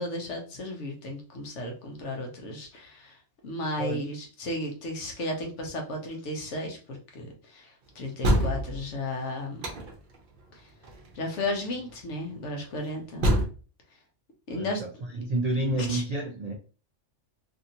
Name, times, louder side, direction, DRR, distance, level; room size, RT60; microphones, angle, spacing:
voice 1, 0.0-3.2 3.4-9.7 10.5-10.6 11.1-13.3 14.5-14.8 15.7-16.0, left 1 dB, 70° left, 1.1 m, -34 dB
sound 1, 8.2-8.9 9.6-10.2 10.8-11.1 11.4-11.5 13.2-13.4, equal, 50° right, 0.7 m, -24 dB
voice 2, 14.5-16.5, right 1 dB, 75° right, 0.3 m, -30 dB
2.9 x 2.6 x 2.7 m
omnidirectional pair, 1.3 m